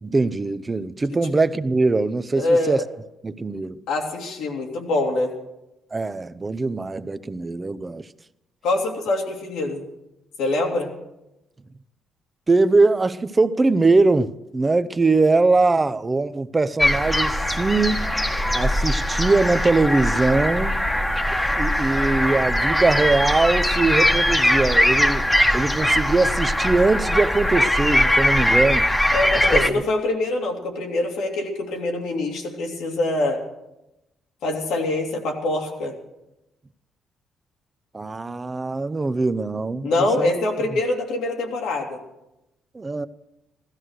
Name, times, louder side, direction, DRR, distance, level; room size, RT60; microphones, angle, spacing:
voice 1, 0.0-2.8 3.2-3.8 5.9-8.1 12.5-18.1 18.5-20.8 21.6-28.9 29.3-29.6 37.9-40.3 42.7-43.1, right 3 dB, 25° right, 0.6 m, -21 dB
voice 2, 2.4-2.8 3.9-5.3 8.6-9.9 10.4-10.9 29.1-33.4 34.4-35.9 39.8-42.0, left 2 dB, 85° left, 2.6 m, -24 dB
sound 1, 16.8-29.7, left 1 dB, 10° left, 1.2 m, -21 dB
15.5 x 13.0 x 6.5 m
cardioid pair, 90°, 0 cm